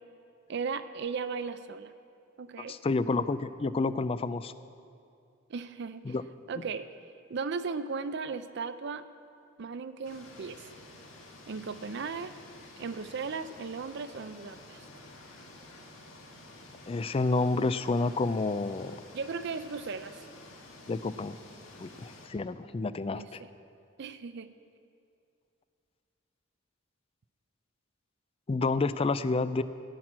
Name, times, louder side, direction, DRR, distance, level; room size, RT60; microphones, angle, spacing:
voice 1, 0.5-1.9 2.4-2.8 5.5-6.1 6.5-6.9 7.3-9.0 9.6-10.6 11.5-12.3 12.8-14.8 19.1-20.2 23.2-23.5 24.0-24.5, right 5 dB, 60° right, 13 dB, 0.5 m, -36 dB
voice 2, 2.7-4.5 6.1-6.2 16.9-19.0 20.9-21.4 21.8-23.4 28.5-29.6, left 3 dB, 30° left, 14 dB, 0.3 m, -29 dB
sound 1, 10.0-22.3, left 2 dB, 85° left, 1.8 m, -51 dB
15.5 x 6.0 x 8.7 m, 2.5 s
head